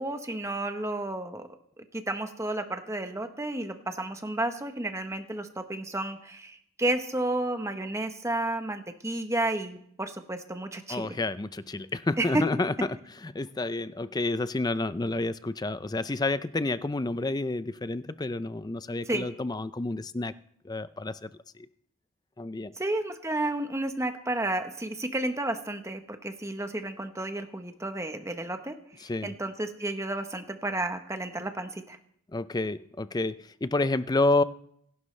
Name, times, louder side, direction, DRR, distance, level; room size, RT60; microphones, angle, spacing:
voice 1, 0.0-1.5 1.8-11.2 12.2-12.4 19.1-19.3 22.8-32.0, right 2 dB, 15° right, 7 dB, 1.0 m, -32 dB
voice 2, 10.9-12.7 13.2-20.3 20.6-21.3 21.6-21.7 22.4-22.7 29.0-29.3 32.3-34.4, left 2 dB, 20° left, 14 dB, 0.4 m, -29 dB
25.5 x 11.5 x 3.3 m, 0.71 s
head